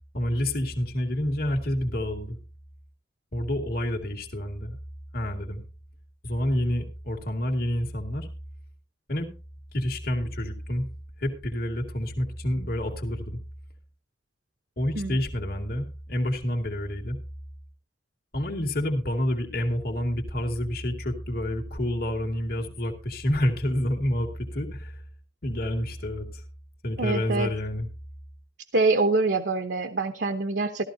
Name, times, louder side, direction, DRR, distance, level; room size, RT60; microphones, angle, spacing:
voice 1, 0.1-2.4 3.3-4.8 5.1-5.6 6.2-8.3 9.1-9.3 9.7-10.9 11.2-13.4 14.8-17.2 18.3-25.0 25.4-26.4 26.8-27.9, left 1 dB, 55° left, 2 dB, 2.0 m, -28 dB
voice 2, 27.0-27.5 28.7-30.8, right 3 dB, 70° right, 7 dB, 0.9 m, -25 dB
14.5 x 13.0 x 2.7 m, 0.32 s
head